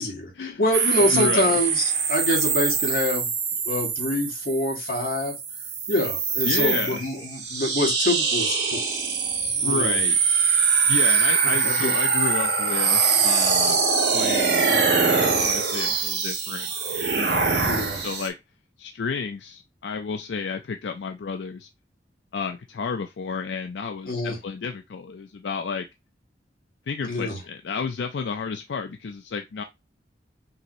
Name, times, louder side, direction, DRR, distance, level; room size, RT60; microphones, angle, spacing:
voice 1, 0.0-1.8 2.1-3.3 3.6-5.3 5.9-8.9 9.6-10.0 11.4-11.9 17.7-18.0 24.1-24.4 27.0-27.4, left 1 dB, 55° left, 1.7 m, -26 dB
sound 1, 0.7-18.3, right 5 dB, 75° right, 1.2 m, -23 dB
voice 2, 1.1-1.6 6.4-7.0 9.5-10.2 10.8-13.8 14.0-16.7 17.0-18.3 18.8-21.7 22.3-25.9 26.9-29.6, left 5 dB, 80° left, 0.4 m, -31 dB
5.4 x 3.0 x 2.6 m
head